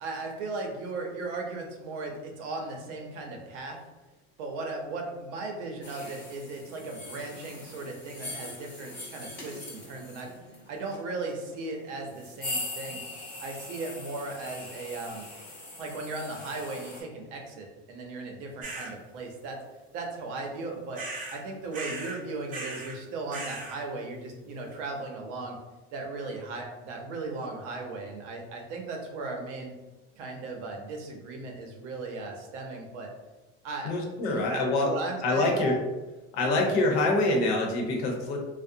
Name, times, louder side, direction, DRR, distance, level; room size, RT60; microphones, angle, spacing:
voice 1, 0.0-3.8 4.4-10.3 10.7-13.0 13.4-15.3 15.8-19.6 19.9-21.0 21.3-25.6 25.9-29.7 30.2-33.1 33.6-33.9 34.3-35.7 36.4-36.7, right 3 dB, 70° right, 2 dB, 0.7 m, -37 dB
sound 1, 5.8-17.0, left 2 dB, 25° left, 1.1 m, -41 dB
sound 2, 18.6-18.9 20.9-21.4 21.7-22.2 22.5-23.0 23.3-23.8, right 3 dB, 25° right, 0.4 m, -38 dB
voice 2, 33.8-34.9 35.2-35.8 36.3-38.4, left 2 dB, 65° left, 1 dB, 0.8 m, -25 dB
2.4 x 2.1 x 2.6 m, 1.1 s
supercardioid pair, 115°, 36 cm